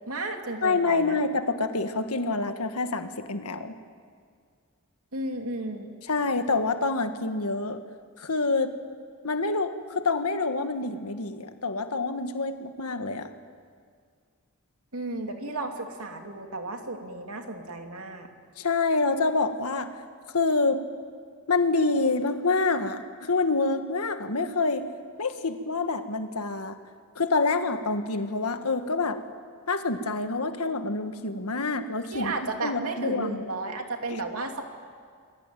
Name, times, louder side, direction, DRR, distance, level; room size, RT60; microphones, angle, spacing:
voice 1, 0.1-1.2 5.1-5.9 14.9-18.3 32.1-34.6, right 2 dB, 75° right, 4 dB, 2.7 m, -33 dB
voice 2, 0.6-3.7 6.1-7.8 8.2-8.7 9.2-13.3 18.6-19.9 20.3-20.8 21.5-24.8 25.2-26.8 27.1-29.2 29.7-32.3 32.6-33.4, left 3 dB, 85° left, 8 dB, 1.6 m, -27 dB
29.0 x 22.0 x 9.1 m, 2.1 s
head